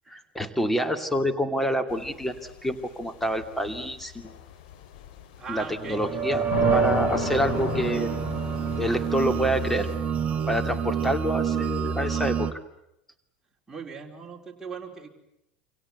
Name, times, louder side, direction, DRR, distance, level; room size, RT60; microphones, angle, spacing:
voice 1, 0.1-4.3 5.5-6.4 6.7-8.1 8.8-9.9 10.5-12.6, equal, 5° left, 7 dB, 2.7 m, -27 dB
sound 1, 1.9-10.0, left 8 dB, 55° left, 3.5 m, -36 dB
voice 2, 5.4-6.1 13.7-15.1, right 6 dB, 10° right, 0 dB, 4.6 m, -39 dB
sound 2, 5.7-12.5, right 6 dB, 25° right, 1.5 m, -27 dB
28.5 x 25.5 x 8.1 m, 0.83 s
figure-of-eight pair, 75°, 5 cm